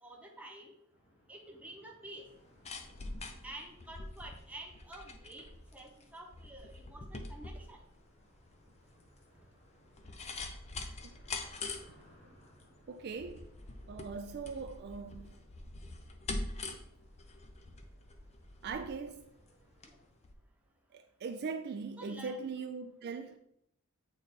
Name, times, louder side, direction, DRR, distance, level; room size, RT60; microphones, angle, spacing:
voice 1, 0.0-0.7 1.3-2.3 3.4-5.5 5.7-7.8 22.0-22.5, right 1 dB, 5° right, 0.9 m, -49 dB
sound 1, 0.9-20.1, equal, 60° left, 2.1 m, -65 dB
sound 2, 2.3-19.9 20.2-20.3, left 2 dB, 30° left, 0.6 m, -45 dB
voice 2, 12.9-13.5 13.9-15.3 18.6-19.3 20.9-23.4, right 5 dB, 50° right, 0.3 m, -40 dB
8.0 x 3.2 x 4.1 m
head